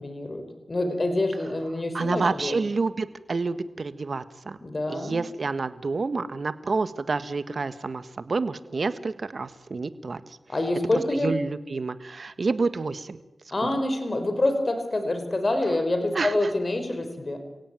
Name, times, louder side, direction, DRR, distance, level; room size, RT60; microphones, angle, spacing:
voice 1, 0.0-2.6 4.6-5.2 10.5-11.3 13.5-17.4, left 2 dB, 40° left, 7 dB, 4.8 m, -26 dB
voice 2, 1.9-4.6 4.9-10.2 11.2-13.2 13.6-13.7 16.1-16.3, right 4 dB, 60° right, 12 dB, 1.6 m, -28 dB
29.0 x 17.0 x 9.1 m, 1.0 s
cardioid pair, 50°, 0 cm